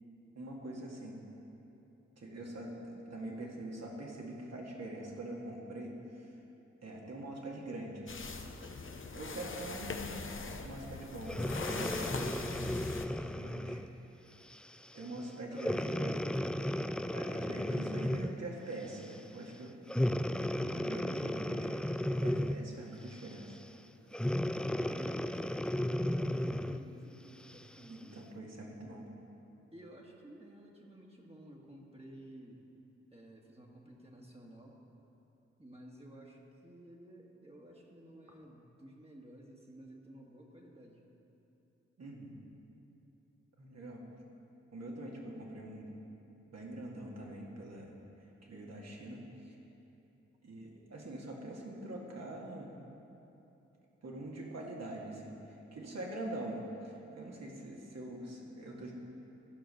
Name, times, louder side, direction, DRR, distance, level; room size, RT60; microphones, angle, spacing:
voice 1, 0.4-1.2 2.2-6.4 6.8-8.3 9.1-12.4 13.4-13.8 14.9-16.2 16.6-16.7 17.1-19.8 20.6-23.6 27.9-29.1 42.0-42.4 43.6-44.0 44.7-45.9 46.5-48.0 48.5-49.6 50.4-52.8 54.0-58.9, right 1 dB, 60° right, -2 dB, 2.0 m, -44 dB
sound 1, 8.1-13.1, left 4 dB, 45° left, 0.9 m, -42 dB
voice 2, 9.3-9.7 15.5-15.8 23.9-24.0 24.8-28.2 29.7-32.7 33.1-34.8 35.6-41.0 50.8-50.9, right 1 dB, 20° right, -2 dB, 1.7 m, -54 dB
Breathing, 11.3-13.9 14.5-14.7 15.6-18.5 19.9-22.7 24.1-26.9 27.5-27.6, left 1 dB, 5° left, 0.4 m, -34 dB
13.5 x 5.2 x 6.5 m, 3.0 s
supercardioid pair, 40°, 29 cm